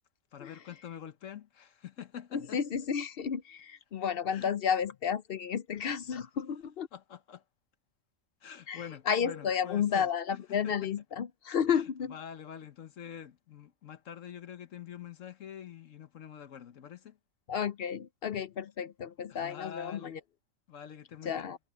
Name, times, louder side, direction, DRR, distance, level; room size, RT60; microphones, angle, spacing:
voice 1, 0.3-2.6 4.3-4.5 6.9-7.4 8.4-10.1 10.6-10.7 11.7-11.8 12.1-17.2 19.3-20.2 20.7-21.5, left 9 dB, 75° left, 1.3 m, -45 dB
voice 2, 2.3-6.9 8.7-12.1 17.5-20.2 21.2-21.6, left 7 dB, 60° left, 0.7 m, -32 dB
omnidirectional pair, 1.4 m